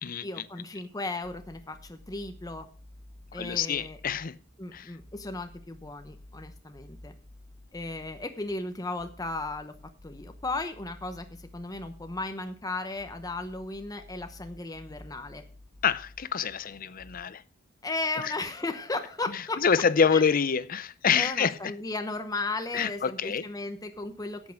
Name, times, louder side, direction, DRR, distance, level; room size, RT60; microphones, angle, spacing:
voice 1, 0.2-2.7 3.3-4.0 4.6-7.1 7.7-9.7 10.0-15.4 17.8-19.6 20.1-20.2 21.1-24.4, left 2 dB, 20° left, 0.8 m, -35 dB
sound 1, 1.2-17.2, left 1 dB, 65° left, 1.6 m, -52 dB
voice 2, 3.3-4.3 4.7-4.9 15.8-17.4 18.2-18.3 19.6-21.5 22.7-23.4, left 6 dB, 45° left, 0.5 m, -26 dB
8.5 x 8.4 x 6.4 m
head